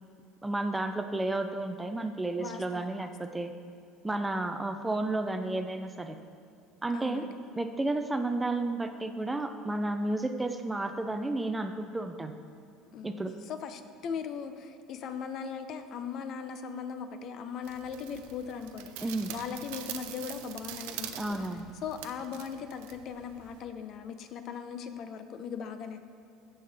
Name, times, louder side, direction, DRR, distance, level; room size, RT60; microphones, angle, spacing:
voice 1, 0.4-3.5 4.0-6.2 6.8-7.3 7.6-12.3 13.0-13.3 19.0-19.3 21.2-21.7, right 2 dB, 10° right, 7 dB, 0.4 m, -32 dB
voice 2, 2.4-3.4 6.9-7.4 12.9-21.5 21.8-26.0, left 6 dB, 50° left, 9 dB, 0.6 m, -39 dB
sound 1, 17.6-23.6, right 11 dB, 85° right, 0.6 m, -44 dB
15.0 x 5.5 x 3.4 m, 2.6 s
cardioid pair, 135°, 0 cm